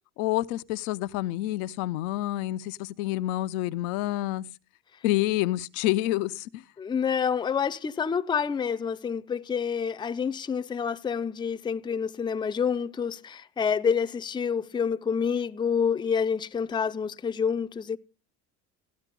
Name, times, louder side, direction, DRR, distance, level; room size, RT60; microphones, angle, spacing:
voice 1, 0.2-4.4 5.0-6.6, left 15 dB, 85° left, 0.6 m, -28 dB
voice 2, 6.8-18.0, left 6 dB, 10° left, 0.4 m, -28 dB
14.0 x 9.0 x 3.7 m
supercardioid pair, 85°, 42 cm